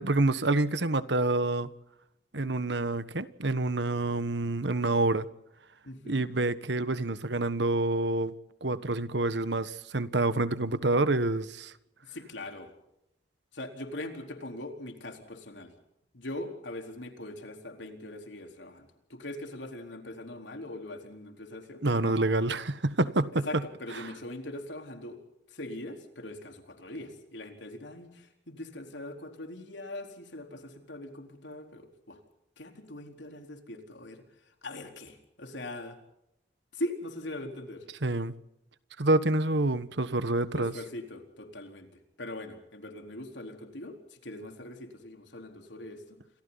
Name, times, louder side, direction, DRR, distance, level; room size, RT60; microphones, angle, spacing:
voice 1, 0.0-1.7 2.3-5.3 6.1-8.3 8.6-11.7 21.8-23.6 38.0-38.3 39.0-40.7, right 2 dB, 75° right, 1.4 m, -27 dB
voice 2, 5.8-6.4 12.1-12.7 13.5-15.7 16.1-22.2 23.5-25.2 25.5-32.2 32.6-34.2 34.6-36.0 36.7-37.8 40.5-41.9 42.2-46.2, left 1 dB, 80° left, 4.1 m, -41 dB
29.5 x 26.5 x 4.1 m
head